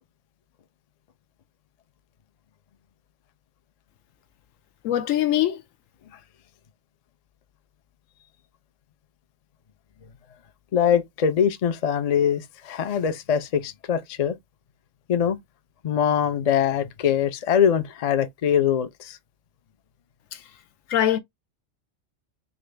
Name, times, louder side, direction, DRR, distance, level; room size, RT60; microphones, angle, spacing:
voice 1, 4.8-5.6 20.9-21.2, left 12 dB, 80° left, 1.0 m, -22 dB
voice 2, 10.7-14.4 15.1-15.4 15.8-19.2, left 8 dB, 50° left, 0.4 m, -23 dB
3.8 x 2.5 x 3.2 m
omnidirectional pair, 1.3 m